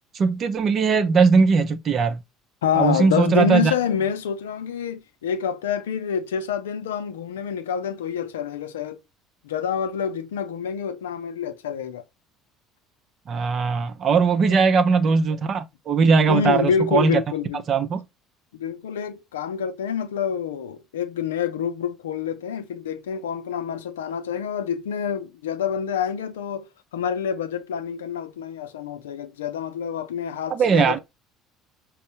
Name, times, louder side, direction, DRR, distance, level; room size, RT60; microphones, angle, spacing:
voice 1, 0.1-2.2 2.8-3.7 13.3-17.2 17.7-18.0 30.5-31.0, right 5 dB, 45° right, 0.6 m, -19 dB
voice 2, 2.6-9.0 9.4-12.0 14.5-15.0 16.3-17.6 18.5-31.0, left 7 dB, 80° left, 0.4 m, -27 dB
5.3 x 2.0 x 2.6 m
hypercardioid pair, 65°, 0 cm